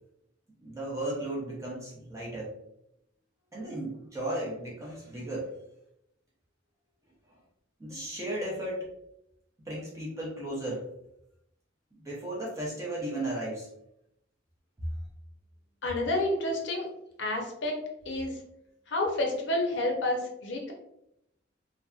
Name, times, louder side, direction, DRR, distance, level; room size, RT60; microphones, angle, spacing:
voice 1, 0.6-2.5 3.5-5.5 7.8-8.9 9.6-10.9 11.9-13.7, right 1 dB, 15° right, -4 dB, 0.5 m, -35 dB
voice 2, 15.8-16.9 17.2-17.8 18.1-18.4 18.9-20.7, left 1 dB, 70° left, 1 dB, 0.6 m, -29 dB
2.5 x 2.1 x 2.3 m, 0.79 s
head